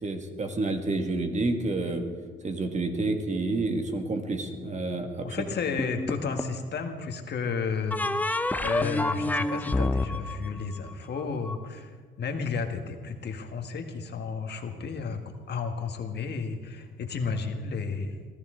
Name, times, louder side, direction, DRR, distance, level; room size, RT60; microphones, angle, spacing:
voice 1, 0.0-2.0 2.4-5.3, right 2 dB, 35° right, 5 dB, 1.9 m, -29 dB
voice 2, 5.2-15.2 15.5-18.2, left 5 dB, 55° left, 5 dB, 1.7 m, -32 dB
sound 1, 5.8-6.6 7.9-11.6, left 2 dB, 10° left, 0.7 m, -28 dB
22.5 x 14.0 x 3.8 m, 1.5 s
cardioid pair, 90°, 20 cm